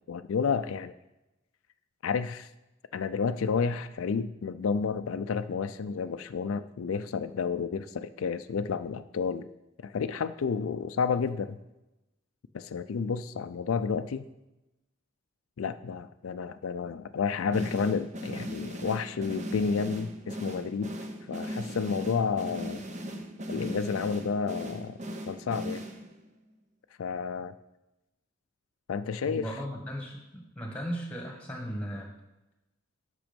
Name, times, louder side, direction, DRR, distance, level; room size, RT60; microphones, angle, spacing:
voice 1, 0.1-0.9 2.0-2.5 2.9-9.5 9.8-11.6 12.5-14.3 15.6-20.9 21.3-22.8 23.5-25.0 25.3-25.8 27.0-27.5 28.9-29.5, left 5 dB, 85° left, 11 dB, 0.4 m, -31 dB
sound 1, 17.5-26.3, equal, 35° right, 0.8 m, -38 dB
voice 2, 29.2-32.1, equal, 5° left, 1 dB, 1.7 m, -36 dB
8.8 x 6.1 x 5.2 m, 0.97 s
head